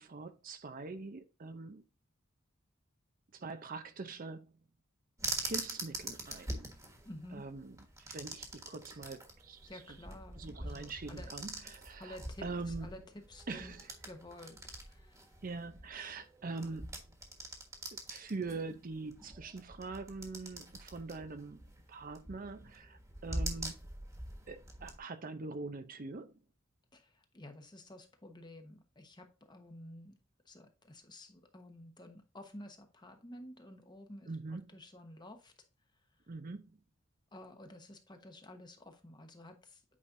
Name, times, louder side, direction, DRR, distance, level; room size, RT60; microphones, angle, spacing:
voice 1, 0.0-1.8 3.3-4.5 5.4-6.5 7.3-7.7 8.0-9.7 10.4-12.2 12.4-12.9 13.5-13.9 15.4-17.0 17.9-21.6 21.9-23.8 24.5-26.3 34.3-34.8 36.3-36.8, right 3 dB, 40° right, 0.6 m, -43 dB
sound 1, 5.2-25.0, right 1 dB, 15° right, 1.5 m, -44 dB
voice 2, 7.0-7.4 9.6-11.3 12.0-13.7 14.0-15.4 26.9-30.1 30.4-35.5 35.9-36.2 37.3-39.8, left 1 dB, 20° left, 1.0 m, -52 dB
8.5 x 5.1 x 2.6 m
head